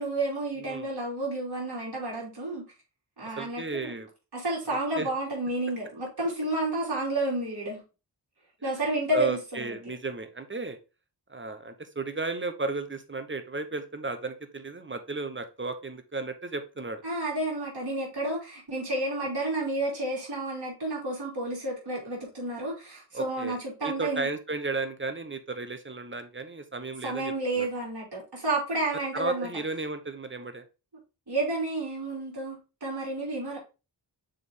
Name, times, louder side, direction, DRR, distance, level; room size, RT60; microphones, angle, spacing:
voice 1, 0.0-2.6 3.2-4.0 4.3-7.8 8.6-9.7 17.0-24.3 27.0-29.5 31.3-33.6, right 2 dB, 65° right, 3.2 m, -31 dB
voice 2, 0.6-0.9 3.2-4.1 5.0-5.1 9.1-10.8 11.3-17.0 23.1-27.7 29.1-30.6, right 3 dB, 25° right, 0.9 m, -34 dB
6.8 x 3.7 x 3.7 m
wide cardioid pair, 65°, 43 cm